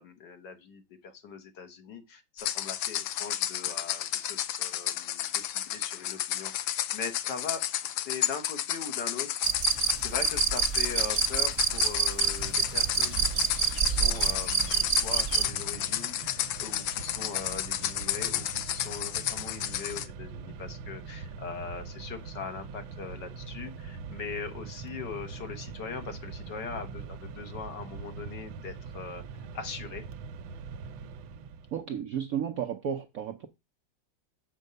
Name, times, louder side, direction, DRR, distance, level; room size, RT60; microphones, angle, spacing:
voice 1, 0.0-7.6 8.1-29.2 29.5-30.0, left 5 dB, 60° left, 1.8 m, -41 dB
sound 1, 2.4-20.1, left 12 dB, 80° left, 1.4 m, -32 dB
sound 2, 9.4-15.5, right 6 dB, 45° right, 1.1 m, -27 dB
Mechanisms, 12.4-31.8, right 5 dB, 80° right, 1.5 m, -43 dB
voice 2, 31.7-33.5, right 8 dB, 65° right, 0.9 m, -33 dB
7.2 x 4.5 x 6.6 m
omnidirectional pair, 2.2 m